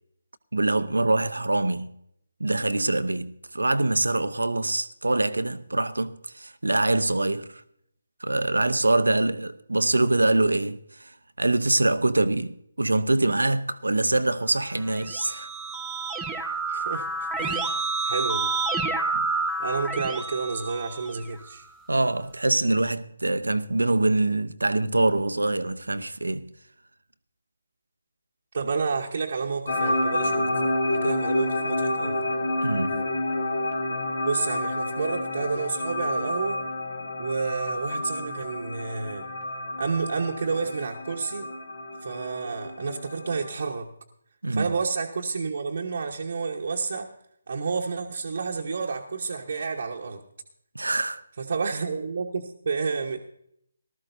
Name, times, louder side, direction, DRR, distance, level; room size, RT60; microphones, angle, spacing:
voice 1, 0.5-2.0 2.4-7.6 8.2-15.5 19.1-19.3 21.9-26.5 32.6-33.1 44.4-44.7 50.7-51.2, right 2 dB, 75° right, 0.8 m, -24 dB
Keyboard (musical), 14.8-21.5, right 3 dB, 10° right, 0.6 m, -29 dB
voice 2, 16.7-18.5 19.6-21.7 28.5-30.5 30.9-32.2 34.2-36.7 37.2-39.3 39.8-41.5 42.0-43.9 44.5-47.1 47.5-50.2 51.4-53.2, right 4 dB, 50° right, 1.1 m, -30 dB
sound 1, 29.7-43.6, left 1 dB, 55° left, 1.8 m, -29 dB
19.0 x 13.5 x 2.7 m
figure-of-eight pair, 150°, 0 cm